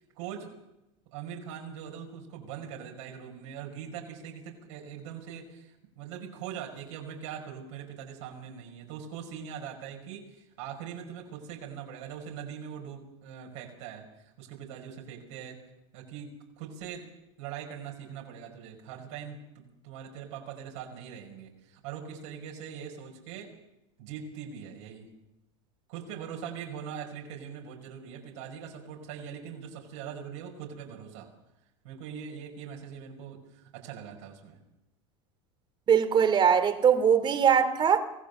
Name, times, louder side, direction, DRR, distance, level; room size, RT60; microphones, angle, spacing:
voice 1, 0.2-0.5 1.1-15.6 15.9-17.1 17.4-23.5 24.0-25.1 25.9-31.3 31.8-34.6, right 8 dB, 75° right, 0 dB, 5.5 m, -42 dB
voice 2, 35.9-38.0, right 7 dB, 30° right, 8 dB, 2.7 m, -21 dB
25.0 x 16.0 x 6.8 m, 0.93 s
hypercardioid pair, 105°, 15 cm